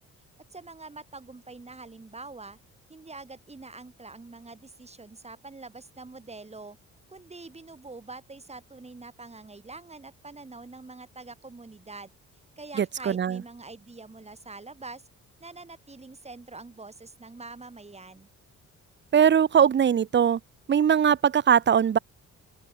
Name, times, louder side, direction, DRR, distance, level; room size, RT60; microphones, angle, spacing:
voice 1, 0.5-2.6 2.9-6.8 7.1-12.1 12.6-15.1 15.4-18.3, right 3 dB, 20° right, 6.0 m, -44 dB
voice 2, 12.8-13.4 19.1-20.4 20.7-22.0, right 8 dB, 35° right, 0.8 m, -21 dB
open air
cardioid pair, 90°, 30 cm